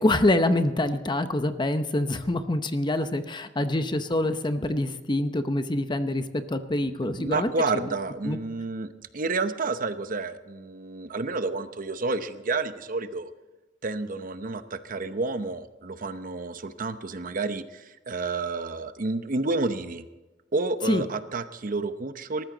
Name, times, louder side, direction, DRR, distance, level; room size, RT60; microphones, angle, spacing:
voice 1, 0.0-7.9 8.2-8.4 20.9-21.0, left 1 dB, 25° left, 10 dB, 0.8 m, -26 dB
voice 2, 7.0-13.3 13.8-20.0 20.5-22.4, right 3 dB, 50° right, 11 dB, 0.8 m, -30 dB
19.0 x 14.0 x 3.9 m, 1.1 s
head